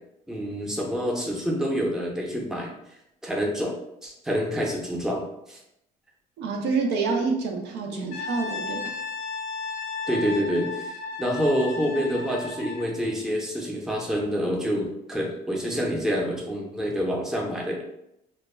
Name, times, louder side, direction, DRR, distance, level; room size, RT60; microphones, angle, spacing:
voice 1, 0.3-2.7 3.2-3.7 4.0-5.6 7.9-8.1 10.1-17.8, equal, 5° right, -2 dB, 0.6 m, -27 dB
voice 2, 6.4-8.9, right 4 dB, 80° right, 2 dB, 0.5 m, -27 dB
Brass instrument, 8.1-12.9, left 4 dB, 90° left, 0.5 m, -34 dB
2.2 x 2.1 x 3.2 m, 0.82 s
cardioid pair, 110°, 17 cm